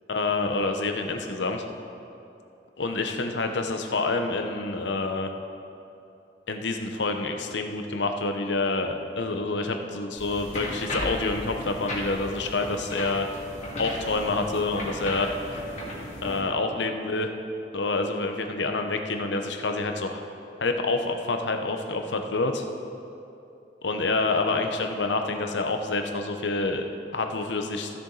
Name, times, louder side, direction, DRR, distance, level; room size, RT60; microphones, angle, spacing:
voice 1, 0.1-1.6 2.8-5.3 6.5-13.3 13.8-15.3 16.2-17.3 17.7-20.2 20.6-22.6 23.8-26.8 27.1-27.9, left 3 dB, 85° left, 5 dB, 0.8 m, -27 dB
sound 1, 10.2-16.4, left 1 dB, 40° left, 2.1 m, -36 dB
15.5 x 7.0 x 4.0 m, 2.7 s
head